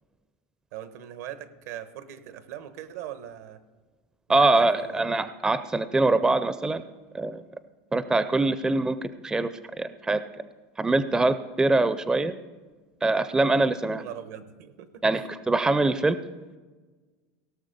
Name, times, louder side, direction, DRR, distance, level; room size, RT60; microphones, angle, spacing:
voice 1, 0.7-3.6 4.3-4.5 4.8-5.1 13.9-15.3, right 11 dB, 75° right, 12 dB, 1.0 m, -40 dB
voice 2, 4.3-6.8 7.1-7.4 7.9-9.5 9.8-10.2 10.8-12.3 13.0-14.0 15.0-16.2, right 2 dB, 10° right, 13 dB, 0.4 m, -23 dB
17.0 x 6.2 x 5.1 m, 1.3 s
supercardioid pair, 120°, 8 cm